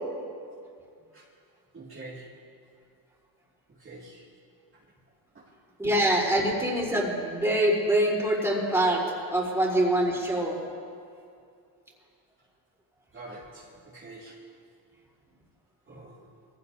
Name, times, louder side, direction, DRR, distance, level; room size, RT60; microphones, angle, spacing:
voice 1, 1.7-2.4 3.8-4.2 5.9-6.3 9.6-9.8 10.3-10.4 10.7-10.8 13.1-14.5 15.9-16.2, right 2 dB, 30° right, -6 dB, 2.3 m, -46 dB
voice 2, 5.8-9.0 9.3-10.6, right 1 dB, 5° right, -4 dB, 3.8 m, -24 dB
22.5 x 16.0 x 2.7 m, 2.3 s
cardioid pair, 115°, 43 cm